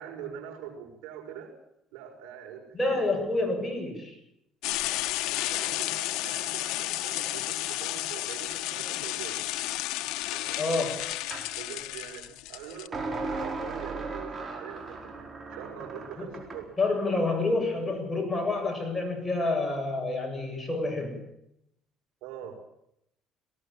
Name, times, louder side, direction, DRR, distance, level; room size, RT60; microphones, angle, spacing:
voice 1, 0.0-1.5 1.9-3.0 5.5-9.4 10.3-10.8 11.6-16.7 22.2-22.5, right 9 dB, 90° right, 4 dB, 5.8 m, -43 dB
voice 2, 2.7-4.2 10.6-11.0 16.2-16.3 16.8-21.2, left 2 dB, 15° left, 2 dB, 7.6 m, -28 dB
sound 1, 4.6-12.9, left 16 dB, 80° left, 1.0 m, -32 dB
sound 2, 11.3-11.5 12.9-16.7, right 3 dB, 30° right, 4.7 m, -36 dB
19.0 x 18.5 x 8.9 m, 0.78 s
cardioid pair, 100°, 0 cm